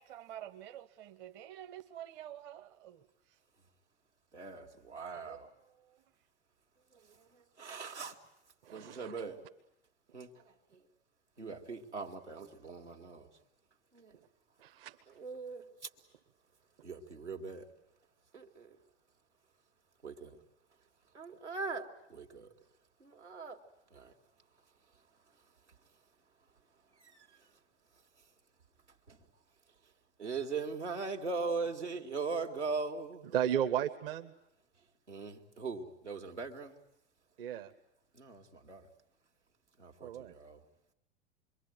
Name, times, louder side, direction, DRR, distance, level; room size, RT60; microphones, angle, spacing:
voice 1, 0.0-3.4 5.1-6.0, right 11 dB, 30° right, 1.0 m, -49 dB
voice 2, 4.3-5.4 7.6-8.1 8.7-9.4 10.1-10.3 11.4-13.2 15.2-15.6 16.8-17.6 18.3-18.5 20.0-20.3 21.1-21.9 22.1-22.5 23.2-23.6 30.2-33.3 35.1-36.7 38.2-38.4 38.7-38.8 39.8-40.1 40.4-40.6, right 4 dB, 85° right, 2.6 m, -39 dB
voice 3, 8.7-9.1 14.6-14.9 33.3-34.3 37.4-37.7 40.0-40.3, right 10 dB, 55° right, 1.4 m, -34 dB
27.0 x 23.0 x 9.4 m
figure-of-eight pair, 95°, 34 cm